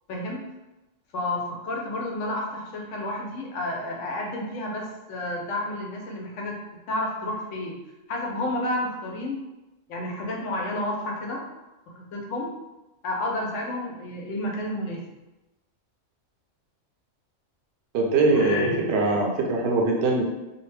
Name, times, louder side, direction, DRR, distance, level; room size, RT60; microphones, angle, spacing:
voice 1, 0.1-0.4 1.1-6.6 6.9-7.8 8.1-9.4 9.9-11.4 11.9-12.5 13.0-15.0 18.3-19.2, left 1 dB, 80° left, 0 dB, 0.9 m, -30 dB
voice 2, 17.9-20.2, right 3 dB, 65° right, 0 dB, 0.7 m, -22 dB
2.7 x 2.1 x 3.2 m, 1.0 s
omnidirectional pair, 1.3 m